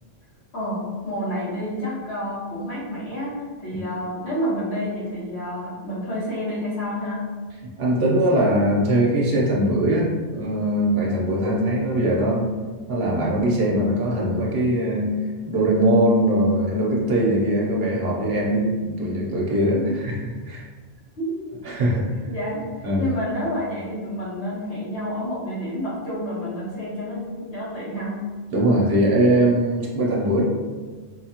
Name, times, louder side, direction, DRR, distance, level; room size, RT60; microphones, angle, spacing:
voice 1, 0.5-7.2 19.7-19.8 21.2-21.4 22.2-28.2, equal, 70° left, -9 dB, 1.7 m, -29 dB
voice 2, 7.6-12.5 12.9-15.1 15.4-20.1 20.4-20.6 21.6-22.1 22.8-23.0 28.5-30.4, right 1 dB, 60° right, -3 dB, 1.0 m, -21 dB
4.4 x 2.4 x 2.9 m, 1.4 s
omnidirectional pair, 1.2 m